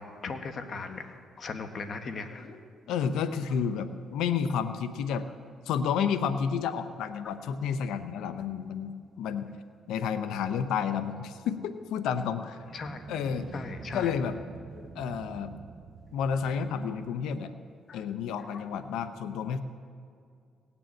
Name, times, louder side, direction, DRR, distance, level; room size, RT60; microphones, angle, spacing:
voice 1, 0.0-2.6 12.7-13.1 13.5-14.1 14.7-14.9 16.9-17.0 17.9-18.0 18.4-18.7, left 4 dB, 50° left, 6 dB, 1.4 m, -39 dB
voice 2, 2.9-5.2 5.7-9.5 9.9-12.6 13.1-13.5 13.9-14.4 15.0-15.5 16.1-17.5 17.9-19.6, left 7 dB, 90° left, 10 dB, 0.7 m, -30 dB
sound 1, 12.5-17.3, right 4 dB, 35° right, 0.7 m, -46 dB
18.0 x 7.0 x 9.0 m, 2.3 s
cardioid pair, 90°, 0 cm